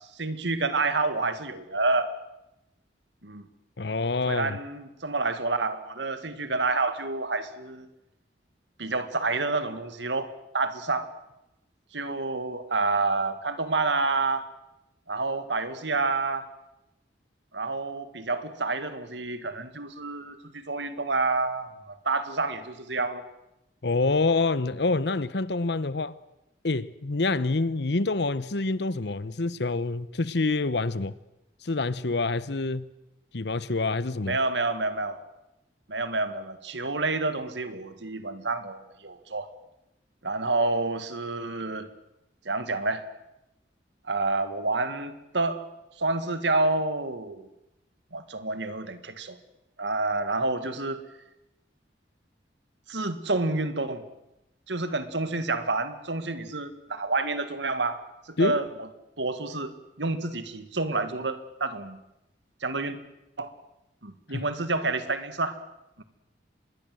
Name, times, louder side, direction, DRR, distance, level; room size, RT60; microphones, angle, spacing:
voice 1, 0.2-2.1 3.2-3.4 4.3-7.9 8.8-11.1 11.9-14.5 15.1-16.5 17.5-23.3 34.3-35.2 35.9-39.5 40.2-41.9 42.5-43.0 44.1-45.6 46.0-47.5 48.1-49.4 49.8-51.0 52.9-54.0 54.7-58.0 58.4-58.7 59.2-62.0 62.6-63.0 63.4-63.5 64.0-65.6 66.0-66.1, right 3 dB, 80° right, 2.0 m, -28 dB
voice 2, 3.8-4.6 23.8-26.2 26.6-31.1 31.6-32.9 33.3-34.4 58.4-58.6 64.3-64.4, left 3 dB, 70° left, 0.9 m, -27 dB
26.0 x 21.5 x 7.8 m
head